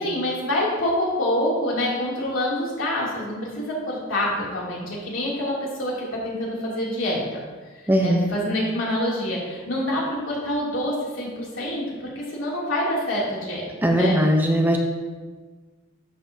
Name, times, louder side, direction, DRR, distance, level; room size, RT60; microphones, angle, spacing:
voice 1, 0.0-7.4 7.7-14.2, left 1 dB, 75° left, -5 dB, 2.8 m, -26 dB
voice 2, 7.9-8.3 13.8-14.8, equal, 10° right, 2 dB, 0.7 m, -19 dB
11.5 x 7.2 x 2.8 m, 1.4 s
head